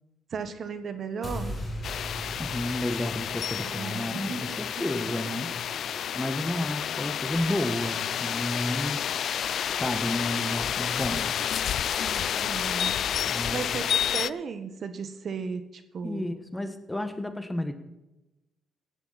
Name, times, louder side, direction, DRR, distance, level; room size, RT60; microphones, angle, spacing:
voice 1, 0.3-1.6 3.5-5.1 5.4-5.5 5.9-6.3 12.0-16.2, right 5 dB, 55° right, 10 dB, 1.3 m, -36 dB
sound 1, 1.2-7.4, equal, 30° left, 4.9 m, -41 dB
sound 2, 1.8-14.3, left 9 dB, 65° left, 0.4 m, -30 dB
voice 2, 2.4-5.5 6.1-9.0 9.7-11.4 13.2-13.6 16.0-17.7, left 1 dB, 10° left, 9 dB, 1.4 m, -31 dB
17.0 x 10.5 x 4.2 m, 0.99 s
cardioid pair, 90°, 0 cm